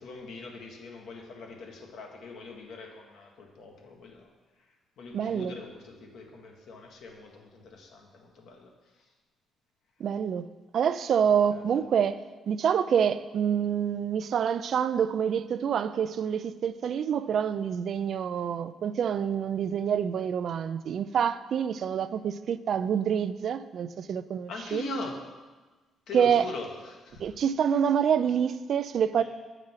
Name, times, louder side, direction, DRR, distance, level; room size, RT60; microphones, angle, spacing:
voice 1, 0.0-4.3 4.6-4.7 5.0-9.1 11.3-11.6 24.5-25.2 26.1-27.3 29.2-29.3, left 3 dB, 75° left, 1.3 m, -42 dB
voice 2, 5.1-5.5 10.0-10.5 10.7-12.2 12.5-24.8 26.1-26.4 27.2-29.2, right 8 dB, 60° right, 0.3 m, -27 dB
7.8 x 5.0 x 5.7 m
cardioid pair, 90°, 0 cm